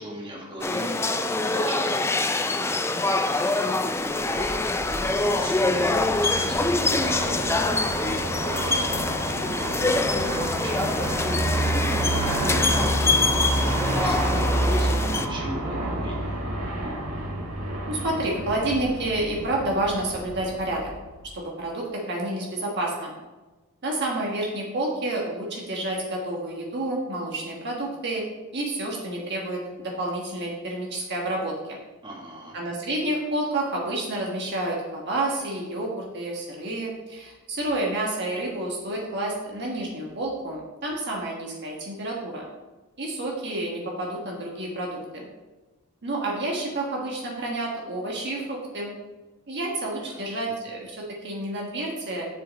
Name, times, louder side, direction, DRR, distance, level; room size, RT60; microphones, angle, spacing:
voice 1, 0.0-2.8 3.2-4.6 5.1-9.1 9.9-12.8 13.0-16.4 32.0-32.6 50.0-50.3, right 1 dB, 20° right, -3 dB, 1.7 m, -40 dB
sound 1, 0.6-15.3, left 2 dB, 10° left, 0.3 m, -25 dB
Aircraft, 4.1-21.4, right 1 dB, 85° right, 1.8 m, -29 dB
voice 2, 17.9-20.9 21.3-23.1 23.8-28.2 28.5-31.8 32.5-42.4 43.0-45.3 46.0-48.9 49.5-52.3, right 1 dB, 50° right, -2 dB, 1.3 m, -29 dB
7.7 x 6.6 x 4.1 m, 1.2 s
head